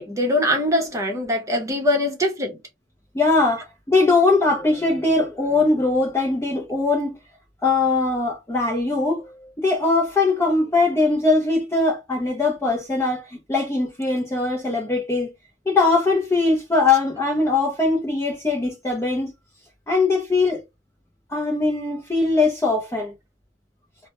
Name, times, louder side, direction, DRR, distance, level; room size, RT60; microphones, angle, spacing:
voice 1, 0.0-2.6, left 1 dB, 15° right, 0.7 m, -22 dB
voice 2, 3.1-7.2 7.6-15.3 15.7-19.3 19.9-20.6 21.3-23.1, left 3 dB, 15° left, 0.5 m, -21 dB
2.2 x 2.0 x 2.8 m
head